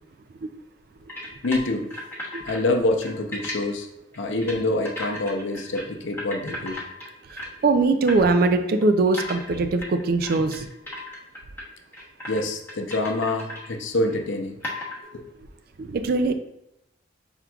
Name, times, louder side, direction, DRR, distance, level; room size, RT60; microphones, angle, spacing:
sound 1, 1.1-2.6 2.9-3.6 4.1-4.6 4.8-5.8 6.1-7.6 8.1-8.2 8.8-11.7 11.9-12.4 12.7-13.7 14.1-14.2 14.6-15.0, left 1 dB, 10° left, 0.9 m, -35 dB
voice 1, 1.4-1.9 2.4-3.9 4.2-6.8 12.3-14.6 15.1-15.2, left 2 dB, 75° left, 4 dB, 0.6 m, -26 dB
voice 2, 7.3-10.7 15.8-16.3, right 3 dB, 50° right, 9 dB, 0.3 m, -22 dB
5.9 x 3.6 x 2.3 m, 0.87 s
head